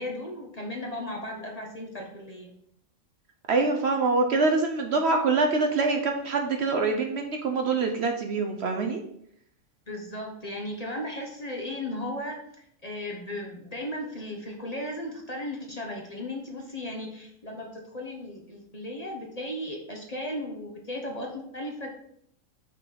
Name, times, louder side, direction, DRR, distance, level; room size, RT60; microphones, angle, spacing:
voice 1, 0.0-2.5 9.9-12.4 12.8-21.9, left 1 dB, 35° left, 0 dB, 0.9 m, -36 dB
voice 2, 3.5-9.0, right 3 dB, 60° right, 3 dB, 0.8 m, -25 dB
5.9 x 3.8 x 4.6 m, 0.70 s
omnidirectional pair, 1.4 m